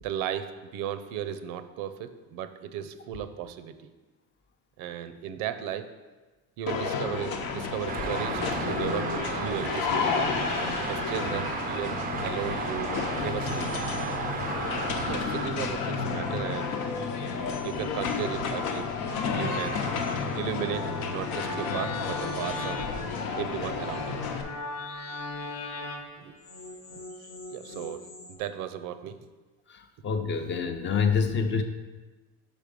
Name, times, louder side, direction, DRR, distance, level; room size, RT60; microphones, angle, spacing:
voice 1, 0.0-3.8 4.8-5.9 6.6-9.1 9.4-10.1 10.9-13.8 15.0-16.8 17.6-18.9 19.3-19.8 20.3-22.8 23.4-24.2 26.2-26.4 26.9-28.0 28.3-29.2, right 9 dB, 80° right, 11 dB, 0.6 m, -35 dB
sound 1, 6.7-24.4, left 5 dB, 85° left, 0.9 m, -31 dB
Traffic noise roadway noise, 7.9-15.5, right 6 dB, 30° right, 0.3 m, -34 dB
sound 2, 12.7-28.4, left 2 dB, 50° left, 0.9 m, -40 dB
voice 2, 29.7-31.6, left 5 dB, 35° left, 6 dB, 0.6 m, -27 dB
5.3 x 5.0 x 5.1 m, 1.2 s
cardioid pair, 135°, 32 cm